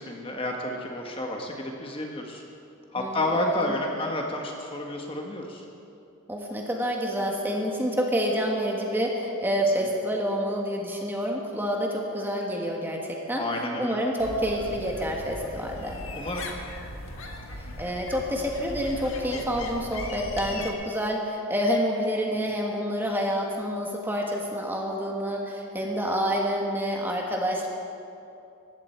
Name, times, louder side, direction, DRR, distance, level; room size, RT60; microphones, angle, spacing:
voice 1, 0.0-2.4 2.9-5.6 13.3-14.0 16.1-16.5, left 1 dB, 25° left, 1 dB, 1.4 m, -30 dB
voice 2, 3.0-3.7 6.3-13.4 13.8-16.0 17.6-27.7, equal, 10° right, 0 dB, 1.5 m, -28 dB
sound 1, 14.2-20.7, left 2 dB, 65° left, 1.7 m, -38 dB
20.0 x 15.0 x 4.6 m, 2.7 s
head